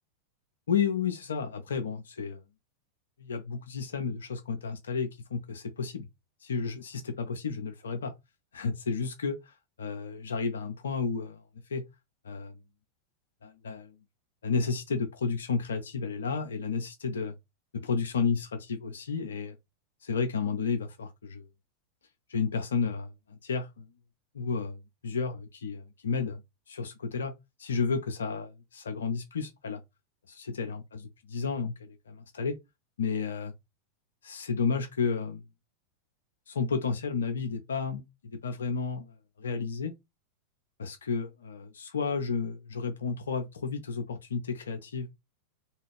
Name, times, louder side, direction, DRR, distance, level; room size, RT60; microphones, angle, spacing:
voice 1, 0.7-2.4 3.2-6.1 6.4-8.1 8.5-11.4 11.7-11.8 12.2-12.5 13.4-13.9 14.4-17.3 17.7-19.6 20.0-21.5 22.3-23.9 24.3-24.8 25.0-26.4 26.7-27.3 27.6-29.8 30.3-31.0 31.3-32.6 33.0-33.5 34.2-35.4 36.5-39.1 39.4-39.9 40.8-45.1, left 5 dB, 65° left, 0.4 m, -32 dB
2.5 x 2.3 x 3.2 m
figure-of-eight pair, 90°, 0 cm